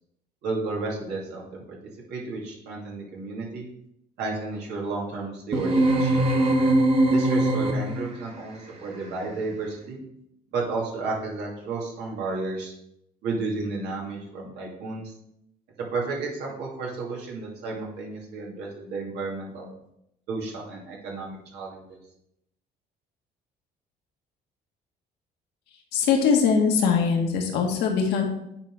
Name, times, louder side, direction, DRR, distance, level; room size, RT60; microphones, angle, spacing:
voice 1, 0.4-1.8 2.1-3.7 4.2-6.2 7.1-10.0 10.5-12.7 13.2-15.1 15.9-19.7 20.3-22.0, right 3 dB, 80° right, -2 dB, 2.6 m, -32 dB
sound 1, 5.5-8.2, right 1 dB, 35° right, 1.6 m, -21 dB
voice 2, 25.9-28.2, left 6 dB, 85° left, 2 dB, 1.6 m, -22 dB
9.6 x 4.1 x 4.8 m, 0.78 s
cardioid pair, 110°, 17 cm